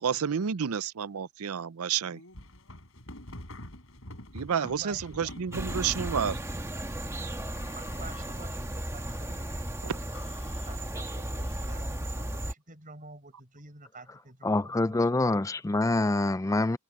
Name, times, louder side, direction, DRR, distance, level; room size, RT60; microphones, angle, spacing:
voice 1, 0.0-2.2 4.3-6.4 9.8-10.0, right 7 dB, 75° right, 0.5 m, -30 dB
sound 1, 2.0-6.5 7.3-8.6 9.1-9.7 10.1-11.9, left 1 dB, 65° left, 5.9 m, -47 dB
voice 2, 4.6-5.3 7.7-9.9 10.4-15.1, right 3 dB, 35° right, 6.6 m, -49 dB
sound 2, 5.5-12.5, right 1 dB, 15° right, 1.5 m, -35 dB
voice 3, 14.4-16.8, left 2 dB, 15° left, 0.4 m, -26 dB
head